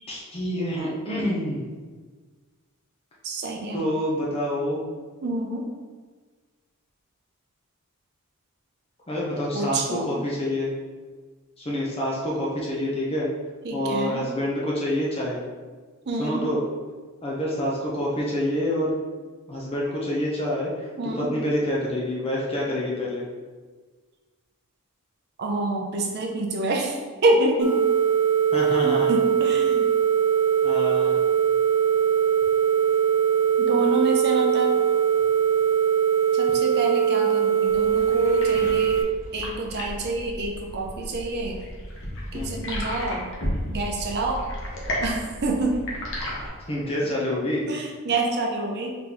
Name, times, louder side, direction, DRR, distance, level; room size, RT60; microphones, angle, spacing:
voice 1, 0.1-1.7 3.7-4.8 9.1-10.7 11.6-13.3 13.7-15.4 16.2-16.6 17.2-18.9 19.5-23.3 28.5-29.1 30.6-31.2 42.3-42.6 46.7-47.6, left 1 dB, 25° left, -5 dB, 0.6 m, -27 dB
voice 2, 3.2-3.9 5.2-5.7 9.5-10.1 13.6-14.2 16.1-16.5 21.0-21.3 25.4-27.8 28.7-29.9 33.6-34.8 36.3-39.0 39.3-41.6 42.3-43.3 43.7-44.4 45.0-45.8 47.7-49.0, right 2 dB, 50° right, 1 dB, 0.5 m, -27 dB
sound 1, 27.6-39.0, right 8 dB, 90° right, 0.6 m, -21 dB
sound 2, 37.7-46.5, equal, 55° left, 1.0 m, -33 dB
3.8 x 3.7 x 2.9 m, 1.4 s
head